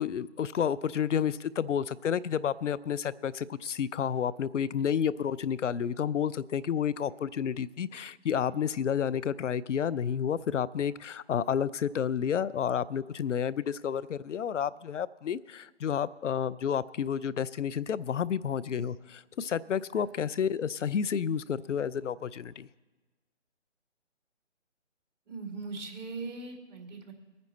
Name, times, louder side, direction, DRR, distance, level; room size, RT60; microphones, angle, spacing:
voice 1, 0.0-22.7, left 8 dB, 85° left, 19 dB, 0.6 m, -30 dB
voice 2, 25.3-27.1, right 3 dB, 40° right, 3 dB, 2.3 m, -40 dB
21.5 x 9.6 x 4.2 m, 1.2 s
hypercardioid pair, 155°, 36 cm